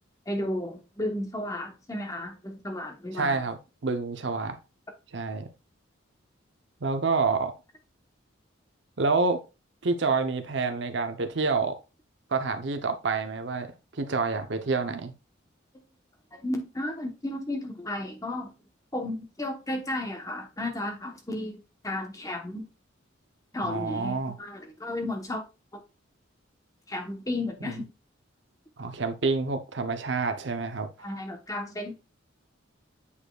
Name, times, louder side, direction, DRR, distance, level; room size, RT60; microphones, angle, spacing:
voice 1, 0.3-3.4 16.3-18.5 18.9-22.6 23.5-25.4 25.7-25.8 26.9-27.9 31.0-32.0, left 1 dB, 15° left, 0.9 m, -33 dB
voice 2, 3.1-4.6 5.1-5.5 6.8-7.5 9.0-9.4 9.8-11.8 12.3-13.7 14.0-15.1 23.6-24.4 27.7-27.8 28.8-30.9, right 4 dB, 60° right, 0.7 m, -28 dB
8.3 x 5.1 x 2.3 m
head